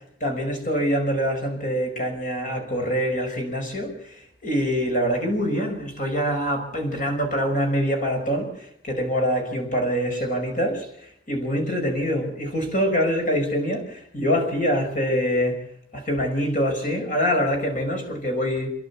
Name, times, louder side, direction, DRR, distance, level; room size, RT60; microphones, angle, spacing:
voice 1, 0.0-4.2 4.4-15.6 15.9-18.7, equal, 40° left, 3 dB, 5.4 m, -25 dB
29.5 x 11.0 x 8.4 m, 0.72 s
head